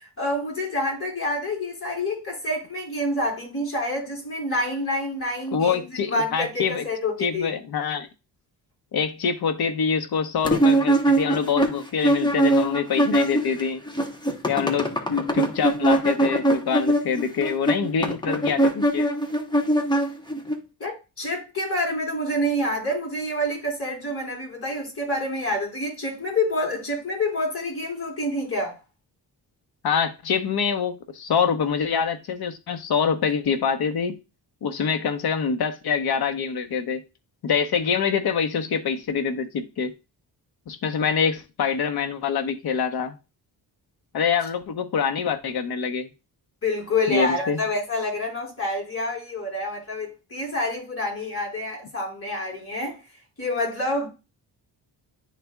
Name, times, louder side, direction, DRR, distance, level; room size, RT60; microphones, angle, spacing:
voice 1, 0.2-7.5 20.8-28.8 46.6-53.0 53.4-54.1, left 1 dB, 35° left, 4.0 m, -27 dB
voice 2, 5.5-6.8 7.2-8.1 8.9-13.8 14.5-19.1 29.8-34.2 34.6-37.0 37.4-39.9 40.7-43.1 44.1-46.1 47.1-47.6, left 6 dB, 65° left, 1.0 m, -25 dB
sound 1, 10.5-13.6 13.9-20.6, right 1 dB, 10° left, 1.0 m, -22 dB
11.0 x 4.1 x 2.3 m
wide cardioid pair, 140°, 41 cm